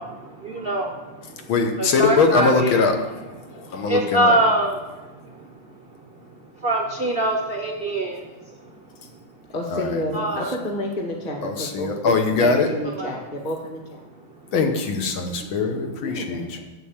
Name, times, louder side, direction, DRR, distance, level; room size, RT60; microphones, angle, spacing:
voice 1, 0.0-1.5 1.8-2.8 3.4-5.7 6.2-6.3 6.5-8.7 10.1-10.5 12.4-12.5 12.9-13.1, right 1 dB, 65° right, 1 dB, 0.5 m, -25 dB
voice 2, 1.5-3.3 3.5-4.3 9.7-10.0 11.4-12.7 14.5-16.5, left 4 dB, 70° left, 5 dB, 1.9 m, -22 dB
voice 3, 9.5-14.0 16.0-16.6, left 1 dB, 20° left, 1 dB, 1.6 m, -30 dB
8.2 x 7.6 x 7.3 m, 1.1 s
omnidirectional pair, 2.3 m